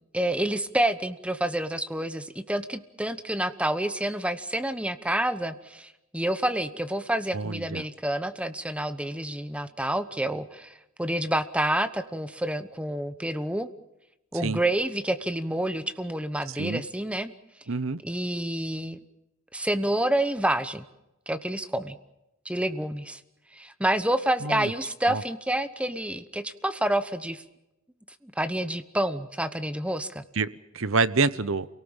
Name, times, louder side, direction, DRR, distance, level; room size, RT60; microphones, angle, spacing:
voice 1, 0.1-13.7 14.3-17.3 18.0-19.0 19.5-20.8 21.3-21.9 22.4-23.2 23.5-27.4 28.2-30.2, right 1 dB, 5° right, 11 dB, 1.0 m, -28 dB
voice 2, 7.3-7.8 14.4-14.6 16.6-16.8 17.7-18.0 24.4-24.7 25.1-25.2 30.4-31.7, right 4 dB, 65° right, 16 dB, 0.9 m, -27 dB
28.5 x 18.0 x 7.3 m, 0.95 s
head